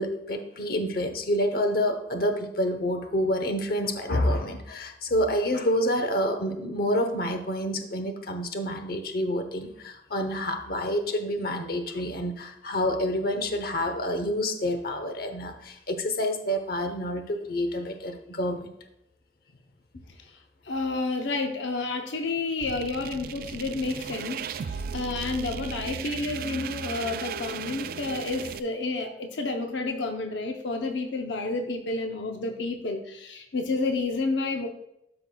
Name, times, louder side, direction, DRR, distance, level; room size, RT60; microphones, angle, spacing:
voice 1, 0.0-18.7, equal, 55° left, 6 dB, 0.9 m, -28 dB
voice 2, 20.7-34.7, left 3 dB, 85° left, 4 dB, 0.7 m, -30 dB
sound 1, 22.6-28.6, right 6 dB, 55° right, 0.3 m, -36 dB
13.0 x 5.4 x 2.3 m, 0.82 s
head